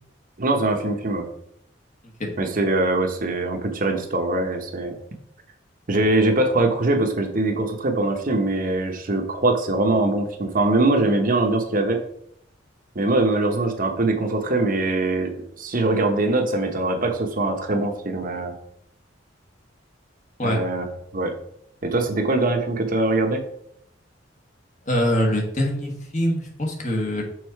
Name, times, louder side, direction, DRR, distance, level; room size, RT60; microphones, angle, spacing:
voice 1, 0.4-1.3 2.4-5.0 5.9-12.0 12.9-18.5 20.4-20.9 21.1-21.3 21.8-23.4, right 2 dB, 50° right, 4 dB, 1.0 m, -22 dB
voice 2, 24.9-27.2, equal, 40° left, 1 dB, 1.5 m, -23 dB
6.4 x 4.1 x 4.6 m, 0.72 s
head